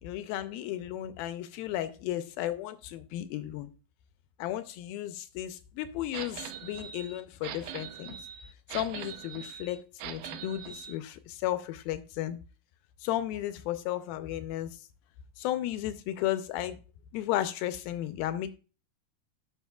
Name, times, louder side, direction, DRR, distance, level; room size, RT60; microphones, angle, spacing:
voice 1, 0.0-3.7 4.4-8.2 8.7-12.4 13.0-14.8 15.4-16.8 17.1-18.6, left 13 dB, 80° left, 2.2 m, -34 dB
sound 1, 6.1-10.9, right 10 dB, 75° right, 2.1 m, -42 dB
11.5 x 6.4 x 2.3 m
omnidirectional pair, 4.6 m